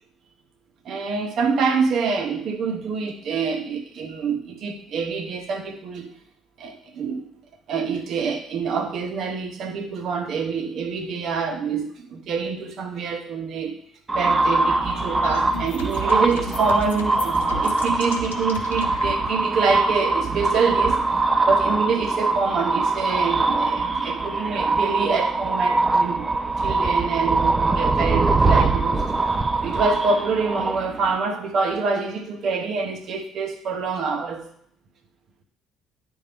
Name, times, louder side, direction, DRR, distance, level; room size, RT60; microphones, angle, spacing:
voice 1, 0.8-6.1 6.6-7.3 7.7-13.8 14.1-21.0 21.4-26.3 26.6-29.0 29.6-34.5, right 5 dB, 50° right, 6 dB, 0.9 m, -26 dB
sound 1, 14.1-31.2, right 3 dB, 20° right, 0.5 m, -22 dB
sound 2, 14.7-19.1, left 5 dB, 80° left, 0.6 m, -37 dB
10.5 x 3.6 x 3.4 m, 0.67 s
figure-of-eight pair, 50°, 0 cm